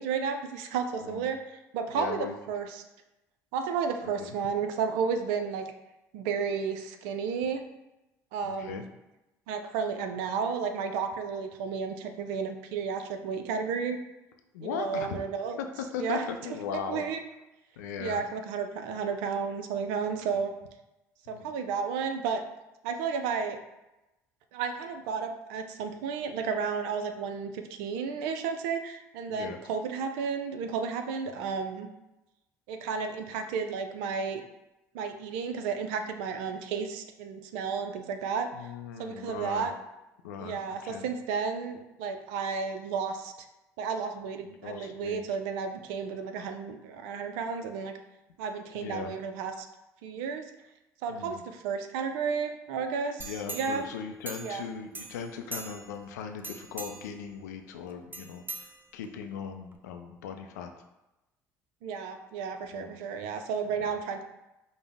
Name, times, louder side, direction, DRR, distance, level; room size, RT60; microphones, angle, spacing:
voice 1, 0.0-2.8 3.5-5.7 6.1-7.6 8.3-8.9 9.5-14.0 14.6-15.6 16.0-16.3 16.9-17.2 18.0-20.5 21.3-22.4 22.8-23.6 24.5-31.9 32.7-34.4 34.9-38.5 39.0-39.7 40.4-43.3 43.8-47.9 48.4-49.7 50.0-50.4 51.0-53.9 54.4-54.6 61.8-64.2, right 6 dB, 75° right, 6 dB, 0.4 m, -32 dB
voice 2, 1.9-2.3 4.0-4.4 8.4-8.8 14.5-15.2 15.6-17.0 17.8-18.2 21.3-21.5 29.3-29.6 38.5-39.7 40.2-41.1 44.6-45.2 48.7-49.1 51.1-51.4 53.2-60.7 62.7-63.0 63.8-64.0, left 7 dB, 80° left, 5 dB, 0.4 m, -38 dB
sound 1, 53.2-54.7 54.9-56.0 56.4-57.2 58.1-59.2 59.7-59.8, right 3 dB, 20° right, 0.5 m, -42 dB
5.1 x 2.1 x 3.5 m, 0.97 s
hypercardioid pair, 60°, 9 cm